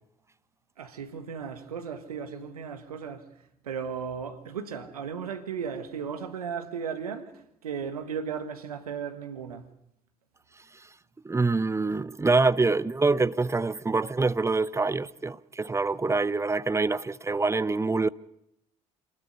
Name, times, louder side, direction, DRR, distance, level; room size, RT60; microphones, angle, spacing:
voice 1, 0.8-9.7, right 6 dB, 80° right, 1.7 m, -36 dB
voice 2, 11.2-18.1, right 3 dB, 15° right, 0.8 m, -25 dB
27.5 x 20.0 x 6.8 m
figure-of-eight pair, 50°, 19 cm